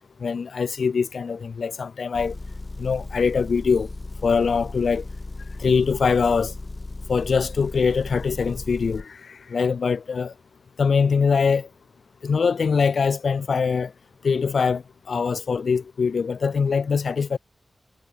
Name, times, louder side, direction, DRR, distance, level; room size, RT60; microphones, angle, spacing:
voice 1, 0.2-2.4 2.8-3.9 4.2-5.1 5.6-6.5 7.1-10.3 10.8-11.7 12.2-13.9 14.2-17.4, left 5 dB, 65° left, 0.4 m, -23 dB
Motor vehicle (road) / Engine, 2.1-9.0, left 2 dB, 25° left, 2.1 m, -36 dB
wide cardioid pair, 135°, 0 cm